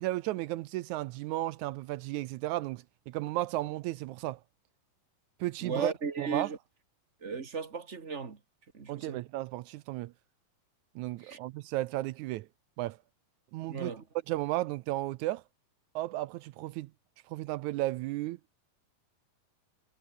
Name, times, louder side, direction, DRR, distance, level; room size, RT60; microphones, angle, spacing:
voice 1, 0.0-4.4 5.4-5.9 6.2-6.5 8.9-10.1 11.0-12.5 12.8-13.0 13.5-13.9 14.3-15.4 16.0-16.9 17.3-18.4, right 17 dB, 80° right, 1.8 m, -34 dB
voice 2, 5.6-6.6 7.2-8.4 8.7-9.2 11.2-11.4 13.7-14.0, right 5 dB, 35° right, 1.2 m, -36 dB
omnidirectional pair, 3.8 m